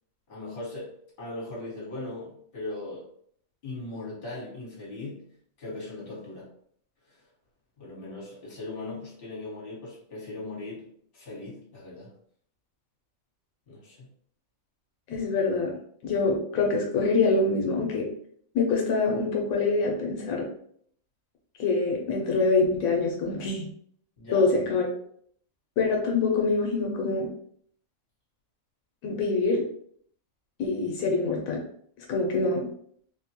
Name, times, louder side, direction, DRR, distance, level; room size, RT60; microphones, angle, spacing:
voice 1, 0.3-3.1 3.6-5.3 5.6-6.5 7.1-7.2 7.8-12.1 13.7-14.1 24.2-24.5, left 2 dB, 45° left, -6 dB, 1.4 m, -39 dB
voice 2, 15.1-15.7 16.0-18.0 18.5-20.5 21.6-23.7 24.3-24.9 25.8-27.3 29.0-29.6 30.6-31.6 32.1-32.6, left 3 dB, 90° left, -1 dB, 1.1 m, -25 dB
3.2 x 2.2 x 2.8 m, 0.62 s
omnidirectional pair, 1.4 m